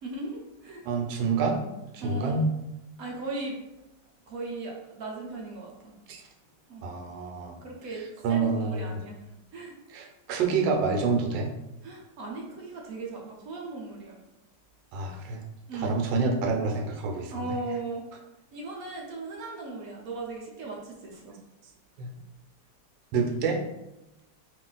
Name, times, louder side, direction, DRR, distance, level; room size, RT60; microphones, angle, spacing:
voice 1, 0.0-0.8 2.0-2.5 3.0-3.6 4.3-6.0 6.7-6.9 7.6-9.2 9.5-9.7 11.8-14.2 15.7-16.0 17.3-18.1 18.5-21.4, right 3 dB, 65° right, -1 dB, 1.0 m, -37 dB
voice 2, 0.8-1.7 2.0-2.5 6.1-6.2 6.8-7.6 8.2-9.0 9.9-11.5 14.9-15.4 15.7-17.5 22.0-22.1 23.1-23.6, right 4 dB, 80° right, 1 dB, 1.3 m, -27 dB
3.2 x 2.5 x 3.8 m, 0.93 s
omnidirectional pair, 2.0 m